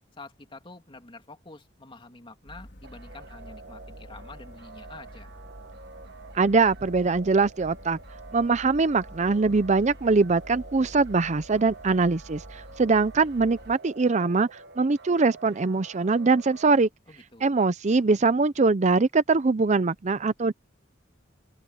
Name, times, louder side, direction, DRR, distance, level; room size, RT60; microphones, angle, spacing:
voice 1, 0.2-5.3 17.1-17.5, left 3 dB, 30° left, 3.0 m, -47 dB
sound 1, 2.5-13.8, equal, 65° left, 3.9 m, -47 dB
sound 2, 2.8-16.7, right 4 dB, 65° right, 1.6 m, -48 dB
voice 2, 6.3-8.0 8.3-14.5 14.8-16.9 17.4-20.5, right 4 dB, 40° right, 0.6 m, -22 dB
open air
head